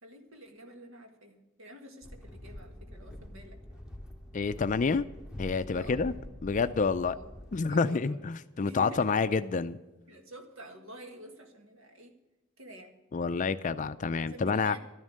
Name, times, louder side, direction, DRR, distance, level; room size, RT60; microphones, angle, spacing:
voice 1, 0.0-3.8 5.7-6.1 7.0-7.3 7.7-8.2 8.6-9.2 10.1-12.2 12.6-12.9 14.1-14.8, equal, 80° right, 5 dB, 1.8 m, -49 dB
sound 1, 2.0-7.6, left 1 dB, 5° right, 2.0 m, -45 dB
voice 2, 4.3-5.0 5.4-6.1 6.4-7.1 7.5-9.8 13.1-14.8, left 4 dB, 40° left, 12 dB, 0.4 m, -28 dB
12.5 x 11.0 x 6.4 m, 1.1 s
head